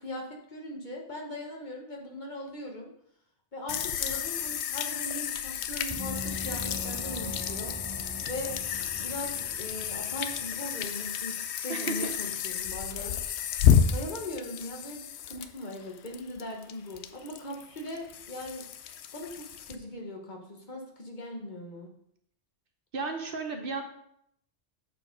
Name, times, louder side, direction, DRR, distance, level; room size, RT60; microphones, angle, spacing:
voice 1, 0.0-2.9 3.5-8.6 9.0-13.2 13.9-18.6 19.1-21.9, left 1 dB, 45° left, 1 dB, 1.3 m, -40 dB
sound 1, 3.7-19.8, left 8 dB, 75° left, 0.8 m, -31 dB
Gong, 5.9-11.1, equal, 25° right, 0.5 m, -41 dB
voice 2, 11.7-12.1 22.9-23.8, right 4 dB, 55° right, 4 dB, 1.0 m, -33 dB
7.4 x 4.4 x 5.1 m, 0.71 s
omnidirectional pair, 1.1 m